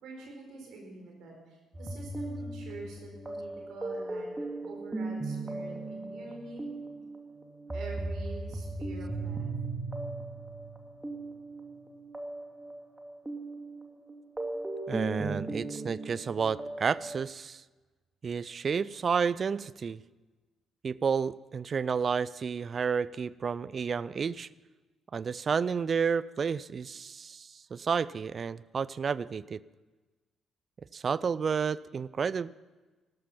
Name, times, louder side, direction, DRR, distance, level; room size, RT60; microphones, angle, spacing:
voice 1, 0.0-6.7 7.7-9.5, right 2 dB, 60° right, 1 dB, 4.4 m, -46 dB
sound 1, 1.7-17.2, right 2 dB, 15° right, 2.3 m, -38 dB
voice 2, 14.9-17.6 18.2-20.0 20.8-24.5 25.1-29.6 30.9-32.5, right 6 dB, 45° right, 20 dB, 0.4 m, -31 dB
15.5 x 13.5 x 5.5 m, 1.2 s
figure-of-eight pair, 45°, 0 cm